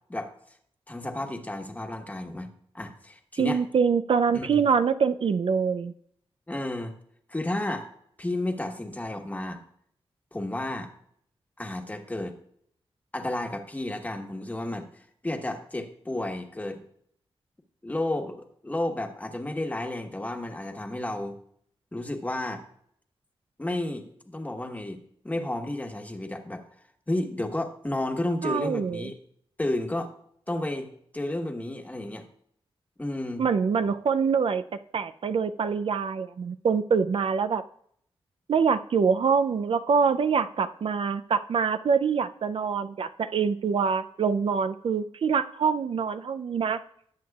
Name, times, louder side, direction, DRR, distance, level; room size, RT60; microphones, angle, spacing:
voice 1, 0.9-2.5 2.7-3.6 4.3-4.6 6.5-6.9 7.3-7.9 8.2-9.6 10.3-10.9 11.6-12.3 13.1-14.9 15.2-16.8 17.8-21.4 21.9-22.6 23.6-25.0 25.2-26.6 27.1-29.2 29.6-30.1 30.5-30.9 31.1-32.2 33.0-33.4, left 1 dB, 15° left, 3 dB, 1.3 m, -32 dB
voice 2, 3.4-5.9 28.4-29.1 33.4-34.7 34.9-37.6 38.5-46.8, right 6 dB, 65° right, 10 dB, 0.4 m, -25 dB
18.5 x 7.8 x 2.4 m, 0.67 s
wide cardioid pair, 110°, 10 cm